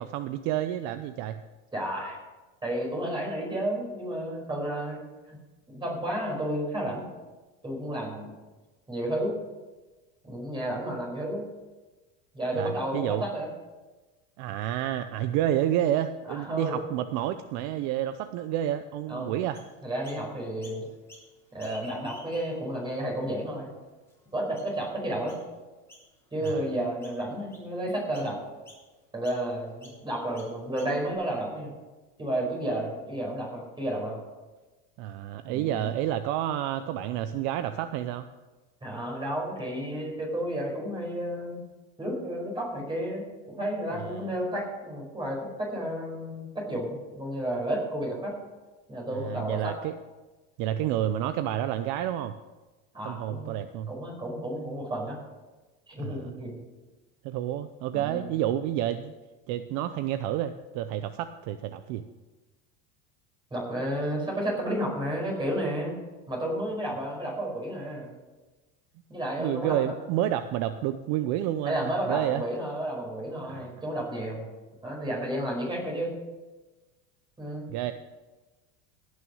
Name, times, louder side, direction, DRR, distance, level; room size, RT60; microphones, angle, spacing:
voice 1, 0.0-1.4 12.5-13.2 14.4-19.6 26.4-26.7 35.0-38.3 43.9-44.2 49.1-49.9 50.6-52.3 53.0-53.9 56.0-56.3 57.2-59.1 59.5-62.0 69.4-72.4 73.4-73.7 77.7-77.9, right 12 dB, 60° right, 10 dB, 0.7 m, -29 dB
voice 2, 1.7-2.2 2.6-5.0 5.3-5.4 5.7-7.1 7.6-8.3 8.9-9.3 10.2-11.4 12.3-13.5 16.3-16.8 19.1-19.3 19.8-20.9 21.5-23.7 24.3-25.4 26.3-28.4 29.1-31.7 32.2-34.2 35.5-35.9 38.8-41.6 42.0-48.3 48.9-49.7 52.9-53.5 53.9-55.2 55.9-56.6 57.9-58.3 63.5-66.0 66.3-68.1 69.1-69.9 71.6-74.5 74.8-76.1 77.4-77.7, right 1 dB, 15° right, -2 dB, 5.3 m, -32 dB
Chirp tweet, 19.5-20.2 20.6-21.3 21.5-22.7 23.3-23.4 24.1-24.2 24.5-24.8 25.3-25.5 25.9-26.1 26.4-26.8 27.0-27.7 28.1-28.3 28.6-28.8 29.2-29.4 29.8-30.0 30.3-31.1, equal, 5° left, 3.8 m, -50 dB
16.5 x 6.4 x 6.3 m, 1.2 s
supercardioid pair, 135°, 34 cm